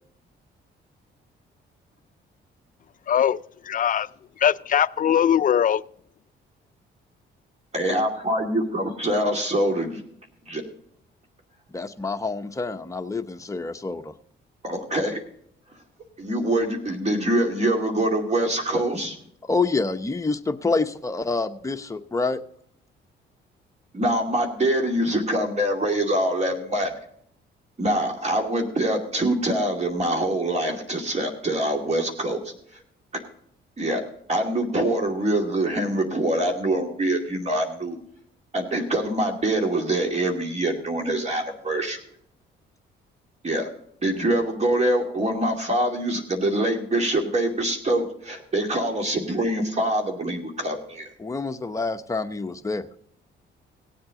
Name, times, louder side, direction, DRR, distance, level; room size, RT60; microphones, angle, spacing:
voice 1, 3.1-3.4 3.6-4.1 4.4-5.8, left 9 dB, 45° left, 17 dB, 0.4 m, -20 dB
voice 2, 7.7-10.0 10.5-10.6 14.6-15.2 16.2-19.2 23.9-26.9 27.8-32.4 32.7-32.8 33.8-34.0 34.3-38.0 38.5-42.0 43.4-43.7 44.0-51.1, right 1 dB, 35° right, 3 dB, 2.4 m, -24 dB
voice 3, 11.7-14.1 19.4-22.4 51.2-52.9, left 3 dB, 15° left, 6 dB, 0.9 m, -27 dB
17.5 x 7.9 x 3.8 m, 0.66 s
cardioid pair, 90°, 20 cm